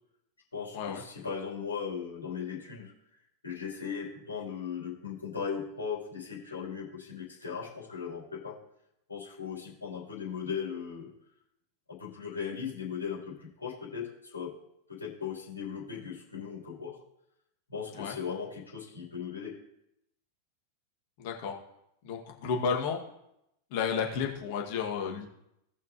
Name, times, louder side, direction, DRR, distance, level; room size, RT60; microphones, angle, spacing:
voice 1, 0.5-8.6 9.1-11.1 12.0-14.5 14.9-17.0 17.7-19.6, left 6 dB, 70° left, -5 dB, 3.3 m, -38 dB
voice 2, 21.2-21.5 22.0-23.0 23.7-25.3, left 6 dB, 45° left, 0 dB, 2.0 m, -32 dB
17.5 x 5.8 x 3.0 m, 0.80 s
figure-of-eight pair, 90°, 0 cm